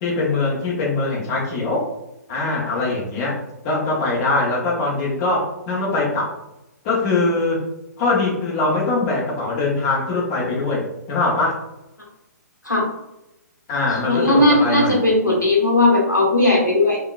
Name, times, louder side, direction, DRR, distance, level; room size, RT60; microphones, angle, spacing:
voice 1, 0.0-1.8 2.3-3.4 3.6-6.3 6.8-7.6 8.0-11.5 13.7-15.0, left 3 dB, 30° left, -3 dB, 0.8 m, -22 dB
voice 2, 14.1-17.0, left 2 dB, 90° left, -3 dB, 0.9 m, -17 dB
3.7 x 2.2 x 2.4 m, 0.91 s
figure-of-eight pair, 120°, 9 cm